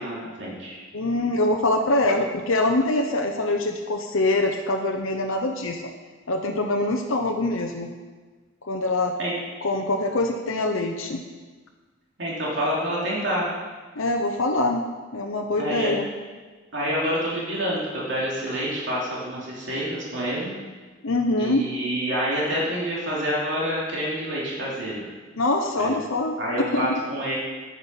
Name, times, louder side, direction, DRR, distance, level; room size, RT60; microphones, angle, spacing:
voice 1, 0.0-0.8 9.2-9.3 12.2-13.5 15.6-15.9 16.7-20.5 21.4-25.0 25.8-25.9 26.4-27.3, equal, 60° right, -6 dB, 2.9 m, -27 dB
voice 2, 0.9-5.8 6.3-7.9 8.6-9.1 9.6-11.2 14.0-16.1 21.0-21.6 25.4-26.4 26.7-27.0, left 2 dB, 80° left, 2 dB, 0.8 m, -24 dB
9.6 x 9.4 x 5.8 m, 1.4 s
head